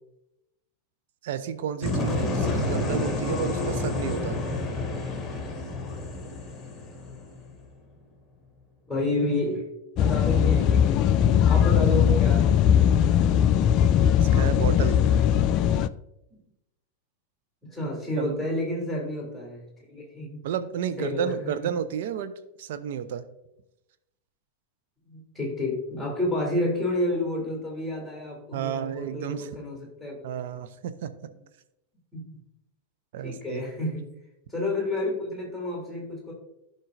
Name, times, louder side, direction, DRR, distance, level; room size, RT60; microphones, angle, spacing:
voice 1, 1.2-4.4 14.2-15.0 18.2-18.5 20.4-22.3 22.6-23.2 28.5-29.5 30.2-31.1 33.1-33.6, right 9 dB, 55° right, 10 dB, 0.6 m, -31 dB
sound 1, 1.8-7.7, left 2 dB, 20° left, 1.5 m, -29 dB
voice 2, 8.9-9.7 10.0-11.1 11.4-13.2 17.6-20.4 21.0-21.5 25.1-30.2 32.1-32.4 33.2-34.0 34.5-36.3, left 1 dB, 5° right, -2 dB, 3.0 m, -30 dB
sound 2, 10.0-15.9, left 9 dB, 35° left, 0.3 m, -20 dB
14.5 x 5.3 x 2.5 m, 0.90 s
figure-of-eight pair, 90°, 0 cm